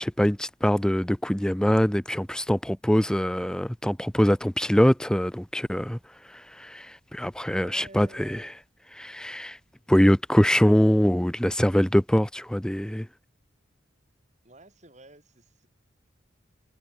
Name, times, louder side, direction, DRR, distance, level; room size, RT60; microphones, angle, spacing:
voice 1, 0.0-6.0 6.6-6.9 7.1-8.4 9.0-9.6 9.9-13.1, equal, 5° left, 0.7 m, -23 dB
voice 2, 7.5-8.6 14.4-15.7, right 1 dB, 35° right, 7.6 m, -51 dB
head